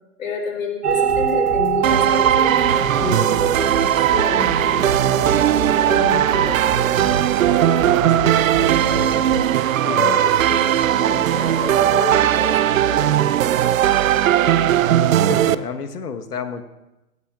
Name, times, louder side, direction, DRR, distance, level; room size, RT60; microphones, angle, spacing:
voice 1, 0.2-9.2 9.8-13.2, left 5 dB, 60° left, 1 dB, 3.7 m, -30 dB
sound 1, 0.8-15.6, right 7 dB, 80° right, 1.4 m, -29 dB
sound 2, 0.9-9.5, right 1 dB, 25° right, 3.9 m, -32 dB
sound 3, 1.8-15.6, right 11 dB, 60° right, 0.5 m, -18 dB
voice 2, 15.2-16.6, left 6 dB, 80° left, 9 dB, 1.2 m, -30 dB
16.5 x 14.5 x 2.4 m, 0.98 s
hypercardioid pair, 135°, 45 cm